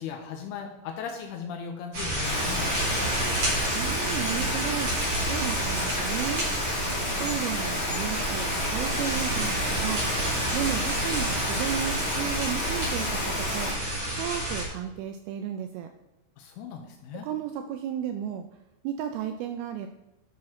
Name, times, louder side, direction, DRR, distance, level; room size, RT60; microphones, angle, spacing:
voice 1, 0.0-3.1 16.4-17.3, left 7 dB, 85° left, 3 dB, 2.7 m, -38 dB
sound 1, 1.9-14.7, right 1 dB, 40° right, 4.0 m, -29 dB
Rain, 2.2-13.7, left 1 dB, 45° left, 1.7 m, -32 dB
voice 2, 3.7-4.9 5.3-6.5 7.2-10.0 10.5-13.7 14.1-15.9 17.2-18.5 18.8-19.9, right 10 dB, 85° right, 6 dB, 2.2 m, -33 dB
11.5 x 5.9 x 3.8 m, 0.96 s
omnidirectional pair, 4.8 m